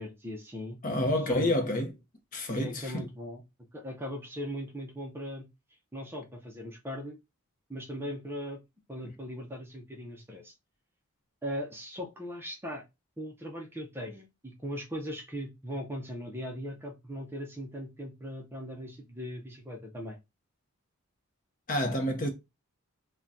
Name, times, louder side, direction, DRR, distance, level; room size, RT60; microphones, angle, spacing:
voice 1, 0.0-0.8 1.1-1.5 2.5-3.4 3.7-5.5 5.9-7.2 7.7-8.6 8.9-10.5 11.4-12.8 13.2-20.2, equal, 10° right, 0.5 m, -39 dB
voice 2, 0.8-1.9 2.3-3.0 21.7-22.3, left 1 dB, 35° left, 0.7 m, -28 dB
2.7 x 2.2 x 3.5 m
head